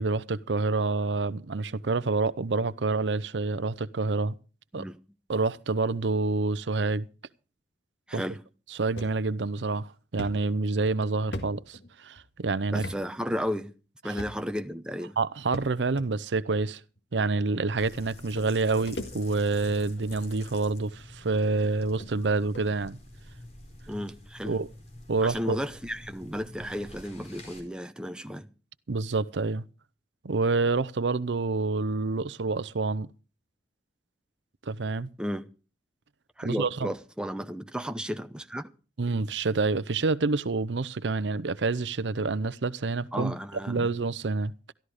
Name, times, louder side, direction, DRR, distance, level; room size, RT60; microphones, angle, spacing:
voice 1, 0.0-4.3 4.7-4.9 5.3-7.1 8.1-8.2 8.7-12.8 15.2-16.8 17.1-23.0 24.5-24.7 25.1-25.6 28.9-29.7 30.2-33.1 34.7-35.1 36.4-36.9 39.0-43.3 43.7-44.7, right 3 dB, 85° right, 0.7 m, -27 dB
voice 2, 8.1-8.4 12.7-13.7 14.0-15.2 23.9-24.6 25.2-28.5 35.2-35.5 36.4-38.7 43.1-43.9, equal, 5° right, 0.8 m, -34 dB
sound 1, 9.0-9.2 9.6-9.7 10.2-12.2 12.8-13.0 13.3-13.4 14.2-14.6 15.5-16.1 17.0-17.1 18.0-18.1 18.4-19.6 20.0-20.3 21.0-21.1 21.6-21.7 22.0-22.1 22.5-22.7, left 1 dB, 75° left, 1.9 m, -39 dB
sound 2, 17.8-27.6, left 1 dB, 40° left, 4.6 m, -47 dB
13.5 x 13.0 x 4.9 m
head